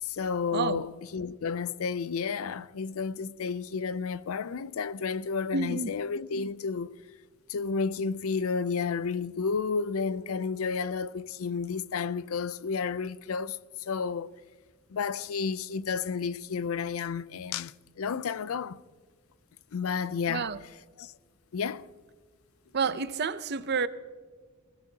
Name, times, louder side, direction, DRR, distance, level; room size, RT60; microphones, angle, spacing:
voice 1, 0.0-6.9 7.5-14.3 14.9-18.8 19.7-20.5 21.0-21.1 21.5-21.9, left 5 dB, 65° left, 0.4 m, -31 dB
voice 2, 5.5-5.9 20.3-20.6 22.7-23.9, right 5 dB, 50° right, 0.6 m, -29 dB
20.5 x 16.5 x 2.8 m
head